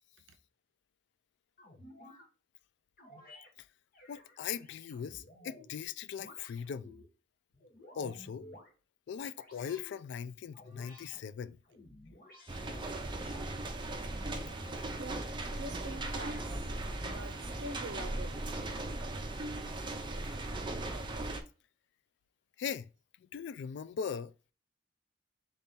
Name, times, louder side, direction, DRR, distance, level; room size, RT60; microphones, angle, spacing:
sound 1, 1.6-2.3 3.0-3.5 3.9-5.7 6.2-7.1 7.5-8.7 9.4-10.0 10.5-11.2 11.6-13.5 14.0-15.2 15.8-17.0, left 1 dB, 50° left, 1.2 m, -53 dB
voice 1, 4.1-6.9 8.0-8.5 9.1-11.6 22.6-22.9 23.3-24.3, left 7 dB, 70° left, 0.3 m, -39 dB
sound 2, 12.5-21.4, right 2 dB, 25° right, 0.5 m, -38 dB
voice 2, 15.0-16.7 17.0-18.4, right 2 dB, 75° right, 0.6 m, -45 dB
4.0 x 2.8 x 3.6 m
head